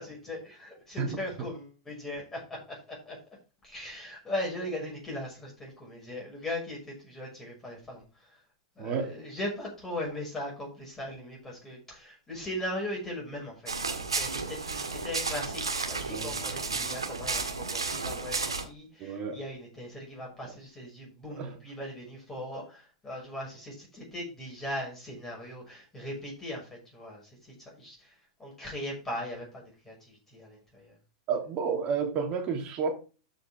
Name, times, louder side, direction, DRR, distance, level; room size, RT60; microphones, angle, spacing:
voice 1, 0.0-3.2 3.6-8.4 8.8-30.9, left 1 dB, 10° left, 6.1 m, -39 dB
voice 2, 8.8-9.1 16.1-16.5 19.0-19.4 21.4-21.6 31.3-33.0, right 6 dB, 40° right, 2.9 m, -31 dB
sound 1, 13.7-18.6, right 4 dB, 85° right, 1.8 m, -32 dB
13.0 x 5.8 x 3.6 m
figure-of-eight pair, 95°, 3 cm